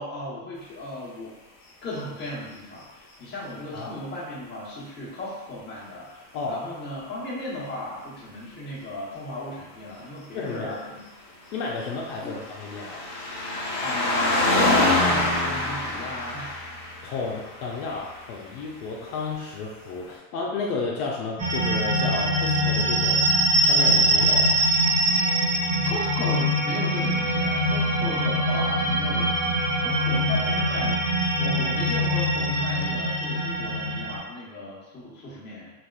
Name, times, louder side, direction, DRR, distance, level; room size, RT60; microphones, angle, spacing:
voice 1, 0.0-1.3 1.8-11.0 12.2-12.4 13.8-16.6 25.8-35.7, left 1 dB, 25° left, -7 dB, 1.1 m, -36 dB
voice 2, 6.3-6.7 10.3-10.8 11.5-13.1 17.0-23.3 23.6-24.5, left 4 dB, 65° left, -2 dB, 0.6 m, -32 dB
sound 1, 11.7-18.4 19.3-19.4, left 2 dB, 45° left, 1.1 m, -26 dB
sound 2, 21.4-34.2, right 1 dB, 20° right, 0.7 m, -23 dB
3.3 x 2.4 x 2.3 m, 1.1 s
supercardioid pair, 125°, 46 cm